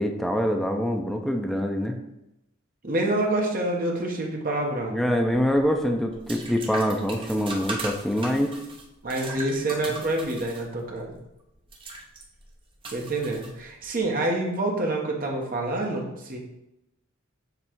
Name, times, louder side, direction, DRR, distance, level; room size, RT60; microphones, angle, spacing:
voice 1, 0.0-2.0 4.9-8.5, equal, ahead, 3 dB, 0.4 m, -25 dB
voice 2, 2.8-5.0 9.0-11.2 12.9-16.4, right 2 dB, 40° right, 0 dB, 1.1 m, -27 dB
sound 1, 5.1-14.0, right 2 dB, 25° right, 0.8 m, -39 dB
6.9 x 3.2 x 4.5 m, 0.90 s
head